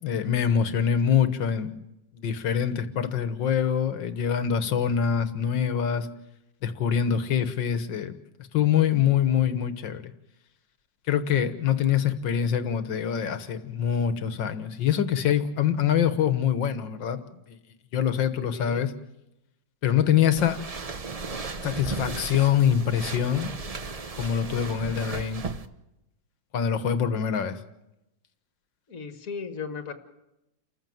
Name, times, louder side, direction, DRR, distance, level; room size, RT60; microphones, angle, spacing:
voice 1, 0.0-1.8 2.1-6.1 6.6-8.1 8.5-10.1 11.1-17.2 17.9-18.9 19.8-20.6 21.6-23.5 24.2-25.5 26.5-27.6, left 8 dB, 85° left, 11 dB, 2.0 m, -24 dB
voice 2, 18.5-18.8 28.9-29.9, left 5 dB, 50° left, 7 dB, 2.1 m, -36 dB
sound 1, 20.4-25.7, right 4 dB, 35° right, 0.6 m, -35 dB
29.0 x 15.0 x 7.8 m, 0.93 s
omnidirectional pair, 2.0 m